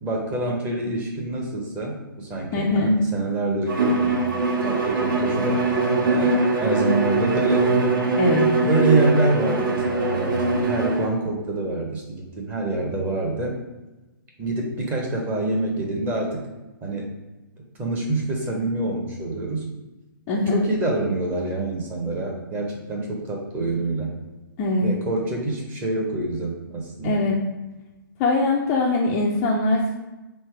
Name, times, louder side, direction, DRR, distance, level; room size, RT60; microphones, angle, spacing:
voice 1, 0.0-4.3 4.6-5.7 6.0-7.7 8.6-13.6 14.4-16.4 16.8-17.1 17.8-19.7 20.5-24.1 24.8-27.3, right 2 dB, 15° right, -1 dB, 0.7 m, -26 dB
voice 2, 2.5-3.0 8.2-8.5 20.3-20.6 24.6-24.9 27.0-27.5 28.2-29.9, left 2 dB, 15° left, -2 dB, 0.4 m, -21 dB
Bowed string instrument, 3.7-11.1, right 3 dB, 65° right, 1.3 m, -22 dB
3.6 x 3.2 x 4.6 m, 1.1 s
hypercardioid pair, 155°, 12 cm